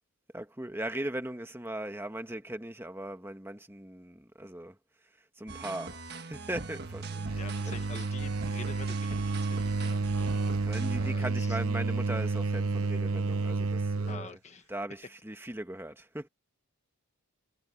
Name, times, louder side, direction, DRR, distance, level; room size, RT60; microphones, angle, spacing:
voice 1, 0.3-4.7 5.4-7.4 7.7-7.8 10.6-14.4 14.7-16.3, right 1 dB, 10° right, 1.4 m, -39 dB
sound 1, 5.5-11.1, right 3 dB, 45° right, 1.6 m, -42 dB
sound 2, 6.5-14.3, right 3 dB, 75° right, 1.1 m, -31 dB
voice 2, 7.3-10.6 11.0-11.6 14.1-14.7, left 3 dB, 30° left, 1.4 m, -46 dB
head